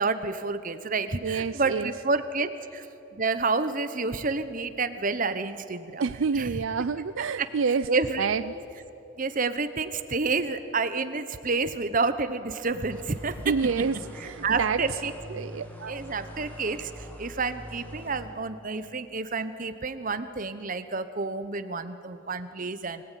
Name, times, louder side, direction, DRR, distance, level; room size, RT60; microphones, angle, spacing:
voice 1, 0.0-2.9 3.1-6.0 6.3-6.5 7.4-7.5 7.9-8.3 9.2-13.4 14.2-15.4 15.9-23.0, right 4 dB, 40° right, 11 dB, 1.0 m, -29 dB
voice 2, 1.2-1.9 6.0-7.9 8.2-8.4 13.5-14.8 15.3-16.0, right 5 dB, 70° right, 13 dB, 0.5 m, -28 dB
sound 1, 12.7-18.2, equal, 10° left, 2.8 m, -43 dB
24.0 x 17.5 x 9.2 m, 3.0 s
head